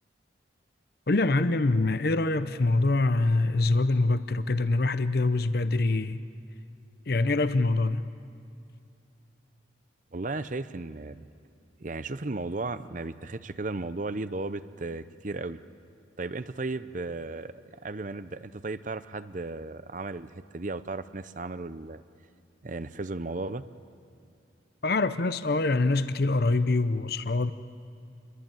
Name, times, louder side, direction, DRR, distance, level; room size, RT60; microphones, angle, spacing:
voice 1, 1.1-6.2 7.1-8.1 24.8-27.5, left 2 dB, 55° left, 0.7 m, -24 dB
voice 2, 10.1-11.2 11.8-15.6 16.2-17.5 17.8-22.0 22.6-23.6, right 3 dB, 40° right, 0.7 m, -35 dB
28.5 x 23.0 x 9.1 m
head